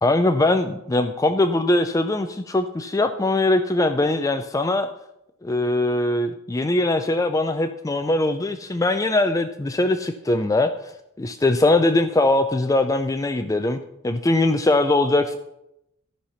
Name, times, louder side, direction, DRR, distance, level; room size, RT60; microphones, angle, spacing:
voice 1, 0.0-4.9 5.4-10.7 11.2-13.8 14.0-15.4, left 2 dB, 15° left, 8 dB, 0.4 m, -21 dB
13.5 x 5.7 x 5.6 m, 0.83 s
head